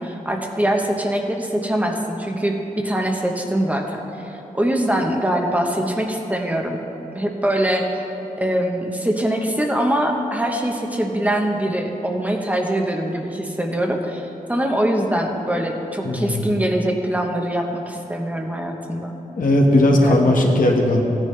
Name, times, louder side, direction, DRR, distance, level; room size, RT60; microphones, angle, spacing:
voice 1, 0.0-6.8 7.1-8.0 8.4-19.2 19.9-20.4, right 1 dB, 10° right, 2 dB, 1.0 m, -23 dB
voice 2, 16.0-16.4 19.4-21.0, left 1 dB, 75° left, 0 dB, 1.4 m, -17 dB
16.0 x 10.0 x 3.3 m, 2.9 s
wide cardioid pair, 100°, 14 cm